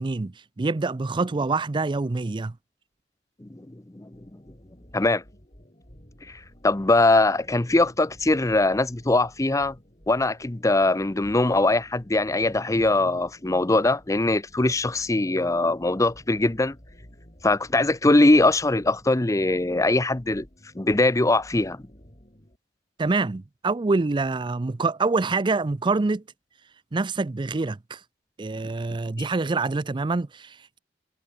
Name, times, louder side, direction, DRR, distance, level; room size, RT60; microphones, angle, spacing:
voice 1, 0.0-2.5 23.0-26.2 26.9-28.0 28.4-30.8, right 3 dB, 25° right, 0.4 m, -26 dB
voice 2, 3.4-4.4 4.9-5.2 6.3-9.8 10.1-16.8 17.4-20.5 20.7-21.8, left 2 dB, 20° left, 0.7 m, -22 dB
sound 1, 4.1-22.6, equal, 35° left, 7.5 m, -52 dB
head